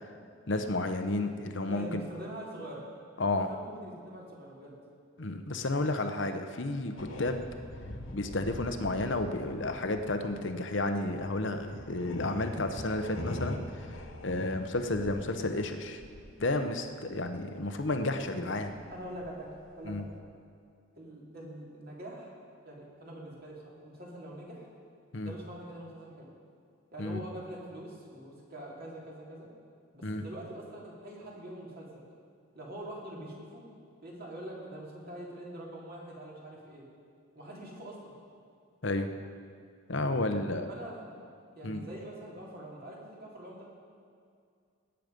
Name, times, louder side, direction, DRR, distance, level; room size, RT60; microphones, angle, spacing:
voice 1, 0.5-2.1 3.2-3.5 5.2-7.4 8.1-16.0 16.4-18.7 19.8-20.0 25.1-25.3 27.0-27.2 30.0-30.2 38.8-39.1 39.9-40.7 41.6-41.9, left 2 dB, 60° left, 7 dB, 0.9 m, -32 dB
voice 2, 1.6-2.8 3.5-4.8 18.3-18.5 18.9-19.5 19.8-20.1 20.9-22.4 22.6-24.7 25.2-26.3 26.9-29.5 29.9-32.0 32.5-33.6 34.0-36.8 37.3-38.1 40.3-41.0 41.5-43.7, right 1 dB, 45° right, -3 dB, 2.8 m, -44 dB
sound 1, 7.0-17.4 17.7-20.1, left 1 dB, 80° left, 1.4 m, -43 dB
19.5 x 9.1 x 5.3 m, 2.3 s
head